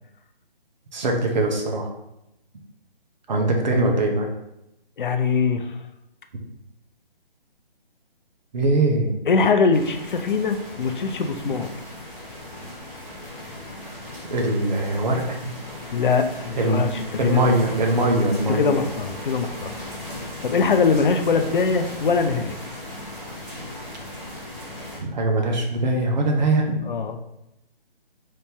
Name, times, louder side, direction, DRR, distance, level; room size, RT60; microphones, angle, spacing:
voice 1, 0.9-1.9 3.3-4.3 8.5-9.2 14.3-15.5 16.6-16.8 17.2-18.6 25.0-26.8, right 2 dB, 50° right, 1 dB, 0.7 m, -21 dB
voice 2, 5.0-5.8 9.3-11.7 15.9-17.4 18.5-19.8 20.4-22.6 26.9-27.2, left 5 dB, 60° left, 7 dB, 0.4 m, -22 dB
sound 1, 9.7-25.0, left 1 dB, 10° right, 0.6 m, -37 dB
3.2 x 2.6 x 3.5 m, 0.86 s
figure-of-eight pair, 145°, 30 cm